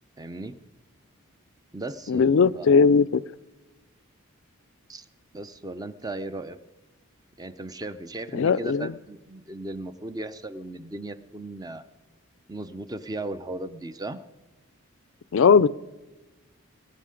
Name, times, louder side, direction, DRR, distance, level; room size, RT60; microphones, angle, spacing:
voice 1, 0.2-0.6 1.7-2.9 4.9-5.1 5.3-6.6 7.4-11.8 12.5-14.2, right 2 dB, 15° right, 12 dB, 0.5 m, -36 dB
voice 2, 2.1-3.2 8.3-8.9 15.3-15.7, left 5 dB, 60° left, 19 dB, 0.4 m, -18 dB
21.0 x 9.5 x 5.1 m, 1.1 s
head